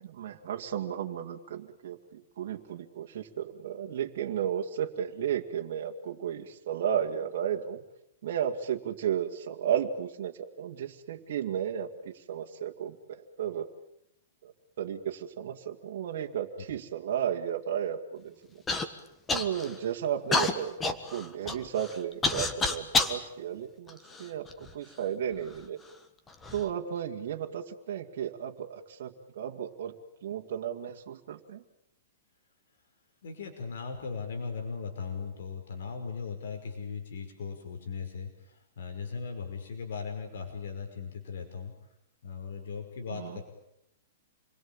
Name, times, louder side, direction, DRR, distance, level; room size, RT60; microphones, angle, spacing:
voice 1, 0.0-7.8 8.2-13.7 14.4-18.3 19.3-25.8 26.5-30.0 30.2-31.6 43.1-43.4, right 9 dB, 50° right, 0 dB, 2.3 m, -34 dB
Human voice / Cough, 18.7-18.9 19.3-19.8 20.3-23.2 23.9-24.7 25.5-25.6 26.3-26.6, left 3 dB, 10° left, 1.5 m, -29 dB
voice 2, 33.2-41.7 42.2-43.4, left 5 dB, 70° left, 5 dB, 5.3 m, -38 dB
28.0 x 22.0 x 8.9 m, 0.81 s
hypercardioid pair, 175°, 0 cm